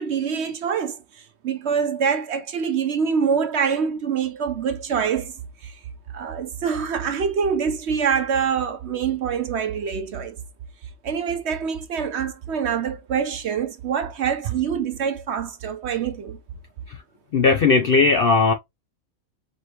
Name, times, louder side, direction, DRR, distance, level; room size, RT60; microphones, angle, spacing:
voice 1, 0.0-5.8 6.1-10.4 11.0-16.4, right 7 dB, 60° right, 0.8 m, -25 dB
voice 2, 17.3-18.5, left 4 dB, 65° left, 0.6 m, -17 dB
5.0 x 3.1 x 2.9 m
omnidirectional pair, 1.5 m